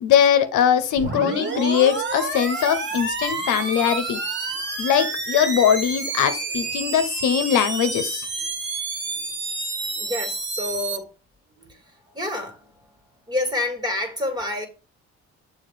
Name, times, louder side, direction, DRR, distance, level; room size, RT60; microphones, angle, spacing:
voice 1, 0.0-4.2 4.8-8.3, left 9 dB, 80° left, 0.8 m, -21 dB
sound 1, 1.0-11.0, right 3 dB, 35° right, 1.3 m, -29 dB
voice 2, 9.9-11.1 11.6-13.0 13.3-14.7, left 2 dB, 15° right, 2.0 m, -29 dB
7.2 x 2.6 x 5.0 m
cardioid pair, 90°, 30 cm